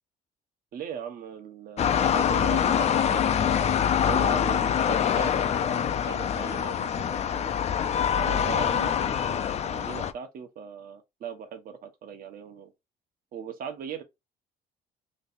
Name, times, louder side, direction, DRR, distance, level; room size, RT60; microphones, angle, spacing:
voice 1, 0.7-7.6 8.2-12.7 13.3-14.0, right 7 dB, 60° right, 1.1 m, -39 dB
sound 1, 1.8-10.1, left 8 dB, 40° left, 0.4 m, -25 dB
3.2 x 2.6 x 4.2 m
cardioid pair, 110°, 17 cm